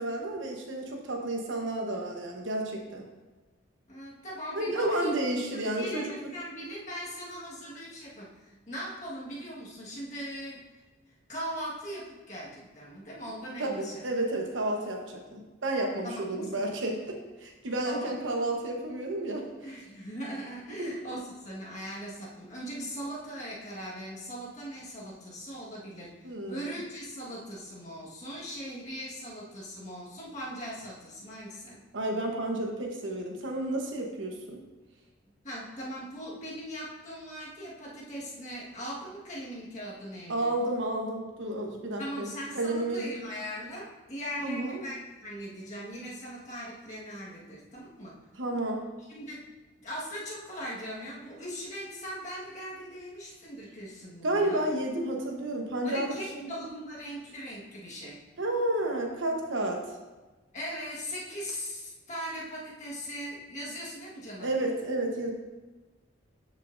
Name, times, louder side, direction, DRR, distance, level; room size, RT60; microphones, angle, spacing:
voice 1, 0.0-3.0 4.5-6.3 13.6-19.7 20.8-20.9 26.2-26.8 31.9-34.6 40.3-43.2 44.4-44.8 48.4-48.8 54.2-56.5 58.4-59.8 64.4-65.3, right 1 dB, 75° right, 2 dB, 1.1 m, -31 dB
voice 2, 3.9-5.1 5.8-10.6 11.3-14.0 16.0-16.6 17.8-18.1 19.6-31.8 35.3-40.5 42.0-48.2 49.1-49.5 49.8-54.7 55.8-58.2 60.5-64.5, equal, 35° left, -5 dB, 1.6 m, -40 dB
10.0 x 5.5 x 2.6 m, 1.2 s
head